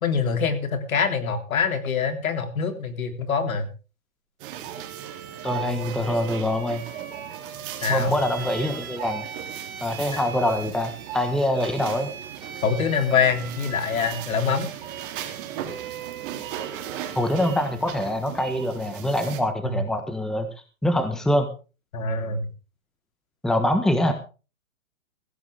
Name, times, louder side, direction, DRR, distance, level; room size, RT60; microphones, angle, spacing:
voice 1, 0.0-3.7 7.8-8.1 12.6-14.7 19.6-19.8 21.9-22.5, left 5 dB, 75° left, 8 dB, 3.5 m, -24 dB
sound 1, 4.4-19.4, right 10 dB, 40° right, 3.0 m, -37 dB
Bowed string instrument, 4.7-17.9, right 7 dB, 80° right, 3.7 m, -41 dB
voice 2, 5.4-6.8 7.9-9.2 9.8-12.1 17.1-20.5 20.8-21.5 23.4-24.1, left 1 dB, ahead, 8 dB, 1.3 m, -24 dB
15.5 x 15.5 x 3.5 m, 0.33 s
hypercardioid pair, 145°, 42 cm